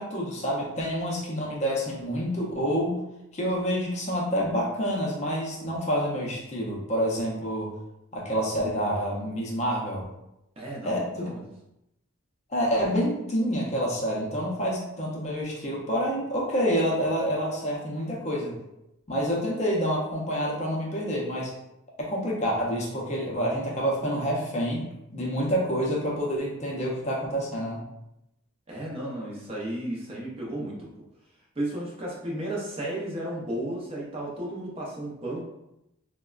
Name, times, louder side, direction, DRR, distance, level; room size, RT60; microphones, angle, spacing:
voice 1, 0.0-3.0 3.3-7.7 8.1-10.0 10.8-11.3 12.5-18.6 19.1-21.5 22.0-24.8 25.1-27.8, equal, 30° left, -3 dB, 0.5 m, -28 dB
voice 2, 10.6-11.4 28.7-30.9 31.6-35.4, right 1 dB, 30° right, -4 dB, 0.6 m, -33 dB
3.3 x 2.1 x 2.3 m, 0.86 s
head